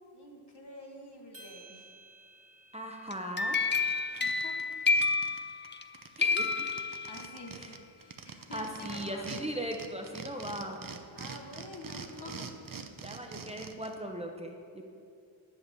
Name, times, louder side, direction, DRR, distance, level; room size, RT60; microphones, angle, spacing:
voice 1, 0.1-1.9 4.2-4.6 7.1-9.3 11.1-12.5, left 1 dB, 55° left, -1 dB, 2.0 m, -47 dB
sound 1, 1.3-5.7, right 2 dB, 65° right, 3.0 m, -57 dB
voice 2, 2.7-3.6 6.2-6.7 7.6-7.7 8.5-10.8 13.0-14.9, equal, 15° right, 1 dB, 1.0 m, -38 dB
sound 2, 3.1-5.9 6.2-7.5, left 4 dB, 25° left, 0.5 m, -30 dB
sound 3, 3.1-3.2 3.5-5.4 5.6-5.7 5.9-9.4 9.7-13.9, right 5 dB, 45° right, 0.8 m, -44 dB
11.0 x 7.1 x 6.9 m, 2.4 s
wide cardioid pair, 75°, 48 cm